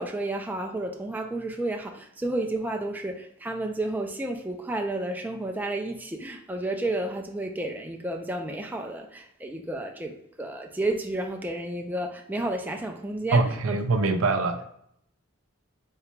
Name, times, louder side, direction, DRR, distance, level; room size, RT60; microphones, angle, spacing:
voice 1, 0.0-13.4 13.7-13.8, right 2 dB, 10° right, 0.3 m, -31 dB
voice 2, 13.3-14.7, right 3 dB, 70° right, 0.5 m, -24 dB
3.8 x 2.2 x 4.4 m
head